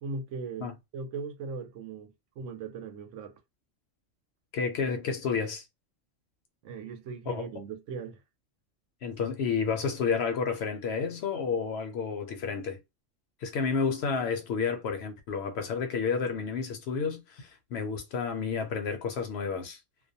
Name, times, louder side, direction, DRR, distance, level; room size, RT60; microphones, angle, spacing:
voice 1, 0.0-3.4 6.6-8.2, right 4 dB, 80° right, 0.9 m, -39 dB
voice 2, 4.5-5.6 7.3-7.5 9.0-12.8 13.4-19.8, left 5 dB, 65° left, 0.8 m, -30 dB
2.3 x 2.1 x 2.6 m
omnidirectional pair, 1.3 m